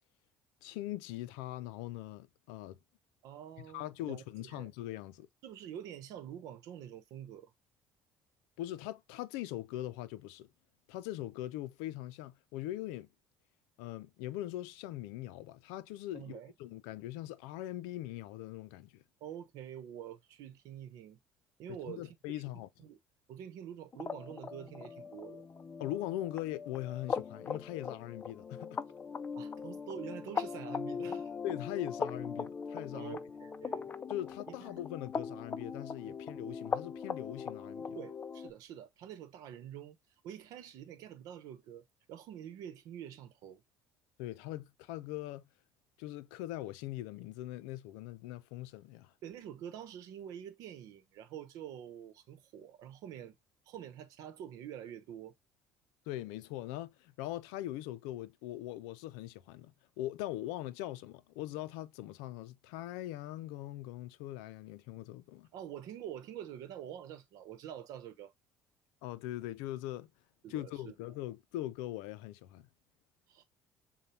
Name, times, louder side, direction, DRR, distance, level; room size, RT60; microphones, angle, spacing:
voice 1, 0.6-2.8 3.7-5.3 8.6-10.5 10.9-13.1 13.8-19.0 21.9-22.7 25.8-28.8 31.4-33.2 34.1-38.0 44.2-45.4 46.0-49.1 56.1-59.7 60.0-65.5 69.0-70.1 70.5-72.7, left 14 dB, 85° left, 0.5 m, -41 dB
voice 2, 3.2-4.7 5.4-7.5 16.1-16.5 19.2-21.2 21.6-22.1 22.5-23.0 23.3-25.4 29.3-31.3 32.9-33.9 34.5-34.7 36.0-36.1 37.9-40.0 40.2-41.8 42.1-43.6 49.2-53.3 53.7-55.3 65.5-68.3 70.4-70.9 73.3-73.4, right 10 dB, 70° right, 0.9 m, -46 dB
sound 1, 23.9-38.5, left 5 dB, 30° left, 0.5 m, -40 dB
6.8 x 2.3 x 2.7 m
supercardioid pair, 85°, 6 cm